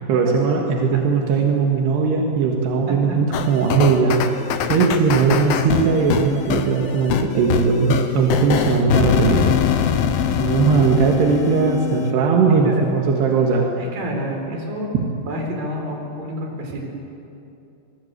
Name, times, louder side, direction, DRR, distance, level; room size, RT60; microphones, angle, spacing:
voice 1, 0.1-4.2 4.7-9.6 10.4-13.7 14.9-15.0, right 5 dB, 85° right, 0 dB, 3.9 m, -18 dB
voice 2, 2.9-3.2 12.6-12.8 13.8-16.9, equal, 60° right, 1 dB, 6.0 m, -29 dB
sound 1, 3.3-12.1, left 8 dB, 70° left, 2.9 m, -23 dB
27.5 x 21.5 x 8.3 m, 2.7 s
omnidirectional pair, 4.7 m